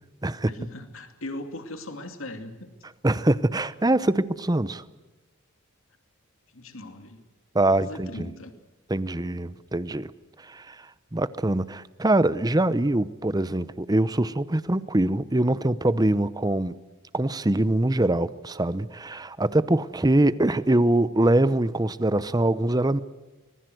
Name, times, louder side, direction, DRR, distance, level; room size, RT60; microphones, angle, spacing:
voice 1, 0.5-2.7 6.5-7.2 7.7-8.5, left 1 dB, 65° left, 7 dB, 2.6 m, -39 dB
voice 2, 3.0-4.8 7.5-8.1 8.9-10.1 10.4-10.9 11.1-16.8 17.1-23.0, right 1 dB, 20° right, 16 dB, 0.7 m, -23 dB
25.0 x 21.0 x 7.8 m, 1.2 s
head